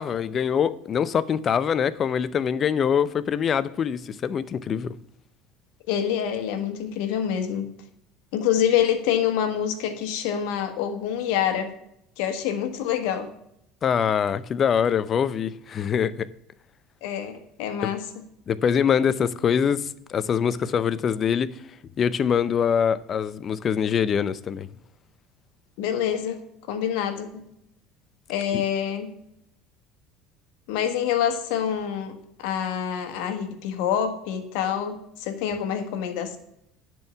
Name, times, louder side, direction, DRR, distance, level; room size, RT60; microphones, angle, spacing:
voice 1, 0.0-4.9 13.8-16.3 17.8-17.9 18.5-19.8 20.1-21.5 22.0-24.7 28.5-28.6, left 7 dB, 40° left, 0.6 m, -24 dB
voice 2, 5.9-7.7 8.3-11.7 12.2-13.3 17.0-18.1 25.8-26.4 26.7-27.3 28.3-29.1 30.7-36.4, left 9 dB, 75° left, 1.5 m, -26 dB
10.5 x 4.6 x 6.7 m
supercardioid pair, 100°, 0 cm